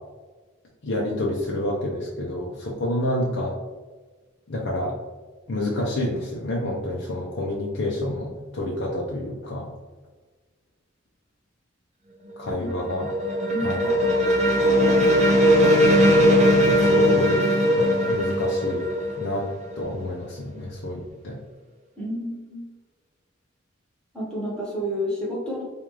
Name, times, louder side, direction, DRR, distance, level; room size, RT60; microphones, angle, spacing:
voice 1, 0.8-3.6 4.5-5.0 5.5-9.7 12.4-13.1 13.6-14.0 16.7-17.4 17.8-18.9 19.2-19.5 19.8-21.4, left 1 dB, 65° left, -3 dB, 0.6 m, -28 dB
sound 1, 12.3-20.1, equal, 35° right, 0.6 m, -19 dB
voice 2, 13.5-13.9 22.0-22.6 24.1-25.6, equal, 5° left, -5 dB, 1.1 m, -30 dB
5.1 x 2.4 x 3.0 m, 1.3 s
head